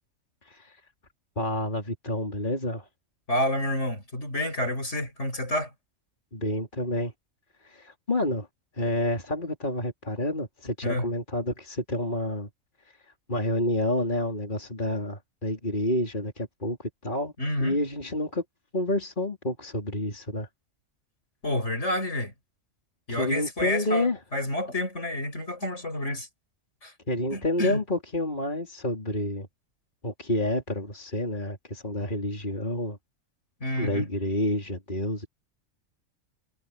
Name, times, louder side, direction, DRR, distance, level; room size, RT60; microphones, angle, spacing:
voice 1, 0.4-0.8 1.4-2.9 6.3-7.1 7.6-8.5 8.7-12.5 13.3-17.3 17.6-18.4 18.7-20.5 23.1-24.2 27.1-29.5 30.0-33.0 33.8-35.3, left 1 dB, 35° left, 4.2 m, -29 dB
voice 2, 3.3-5.7 10.8-11.1 17.4-17.8 21.4-22.3 23.1-26.3 26.8-26.9 27.3-27.8 33.6-34.1, left 1 dB, 60° left, 7.1 m, -29 dB
omnidirectional pair, 1.4 m